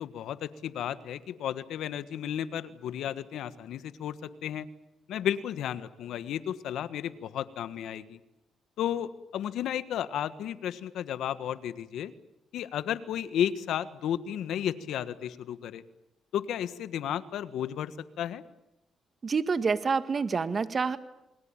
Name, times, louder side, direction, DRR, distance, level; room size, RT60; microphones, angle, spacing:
voice 1, 0.0-4.7 5.1-8.2 8.8-12.1 12.5-15.8 16.3-18.4, left 10 dB, 75° left, 13 dB, 1.5 m, -33 dB
voice 2, 19.2-21.0, right 5 dB, 40° right, 12 dB, 1.8 m, -27 dB
28.5 x 21.5 x 9.0 m, 0.95 s
cardioid pair, 90°, 0 cm